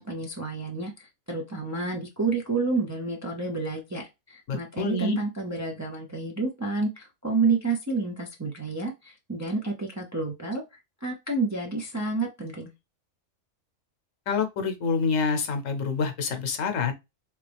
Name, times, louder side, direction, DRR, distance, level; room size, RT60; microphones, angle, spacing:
voice 1, 0.0-10.6 11.0-12.7, right 3 dB, 20° right, 0.5 m, -29 dB
voice 2, 4.5-5.2 14.3-16.9, left 5 dB, 70° left, 1.1 m, -27 dB
3.5 x 3.1 x 3.3 m
omnidirectional pair, 1.4 m